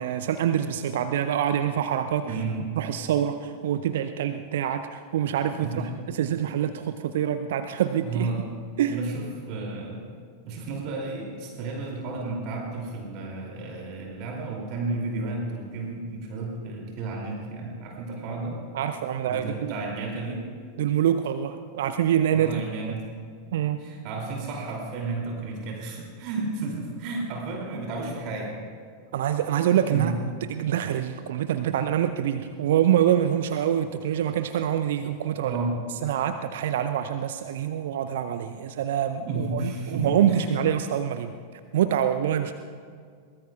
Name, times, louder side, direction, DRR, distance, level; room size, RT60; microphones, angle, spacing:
voice 1, 0.0-2.3 2.8-5.8 6.1-8.3 8.8-9.0 18.7-19.7 20.8-22.6 23.5-23.8 29.1-30.1 30.5-35.6 36.0-41.3 41.7-42.5, right 10 dB, 55° right, 10 dB, 0.5 m, -25 dB
voice 2, 2.2-2.6 5.4-5.9 7.1-7.2 8.0-8.4 8.9-10.0 10.4-18.6 19.3-20.4 22.3-23.1 23.8-28.6 29.9-30.1 35.4-35.8 39.3-40.5, right 3 dB, 40° right, -1 dB, 2.7 m, -32 dB
22.5 x 20.0 x 2.4 m, 2.1 s
figure-of-eight pair, 90°, 0 cm